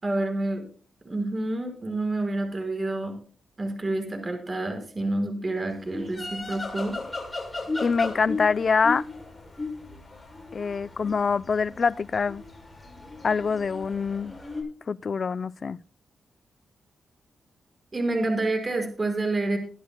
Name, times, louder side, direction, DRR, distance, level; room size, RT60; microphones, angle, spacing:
voice 1, 0.0-0.6 1.0-3.1 3.6-7.0 17.9-19.6, right 2 dB, 30° right, 4.9 m, -28 dB
sound 1, 5.8-14.6, left 3 dB, 15° left, 6.8 m, -36 dB
voice 2, 7.8-9.1 10.5-12.4 13.2-14.3 14.9-15.8, left 5 dB, 45° left, 0.4 m, -25 dB
23.0 x 11.5 x 2.2 m
cardioid pair, 105°, 0 cm